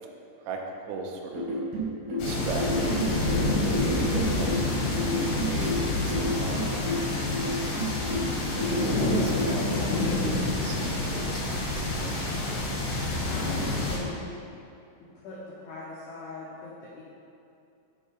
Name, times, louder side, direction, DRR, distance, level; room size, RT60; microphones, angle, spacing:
voice 1, 0.9-1.5 2.2-4.5 5.1-7.0 7.3-7.4 9.1-12.2, right 3 dB, 85° right, 2 dB, 3.3 m, -38 dB
sound 1, 1.3-9.6, equal, 65° right, 2.2 m, -31 dB
sound 2, 2.2-14.0, left 2 dB, 70° left, 2.9 m, -28 dB
voice 2, 13.3-14.2 15.0-17.0, left 2 dB, 90° left, -7 dB, 2.3 m, -40 dB
7.2 x 4.5 x 4.9 m, 2.6 s
omnidirectional pair, 5.7 m